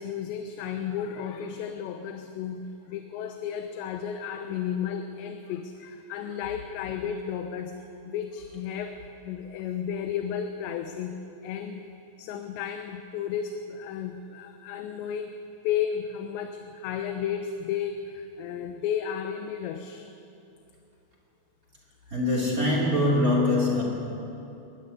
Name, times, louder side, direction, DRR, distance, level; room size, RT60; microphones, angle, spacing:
voice 1, 0.0-11.8 12.2-15.3 15.6-20.1, left 8 dB, 80° left, 6 dB, 3.1 m, -33 dB
voice 2, 22.1-23.8, left 1 dB, 25° right, -2 dB, 2.6 m, -23 dB
21.0 x 13.0 x 9.7 m, 2.8 s
omnidirectional pair, 5.1 m